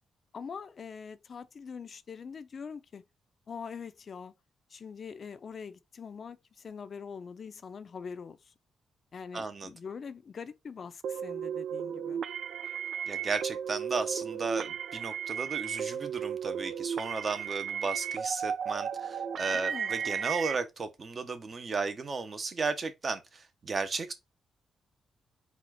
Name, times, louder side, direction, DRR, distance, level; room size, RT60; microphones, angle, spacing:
voice 1, 0.3-3.0 3.5-4.3 4.7-8.5 9.1-12.2 19.5-19.9, left 6 dB, 50° left, 0.5 m, -43 dB
voice 2, 9.3-9.7 13.1-24.1, right 4 dB, 45° right, 0.9 m, -34 dB
sound 1, 11.0-20.6, right 8 dB, 75° right, 0.4 m, -35 dB
4.3 x 2.4 x 4.2 m
cardioid pair, 80°, 0 cm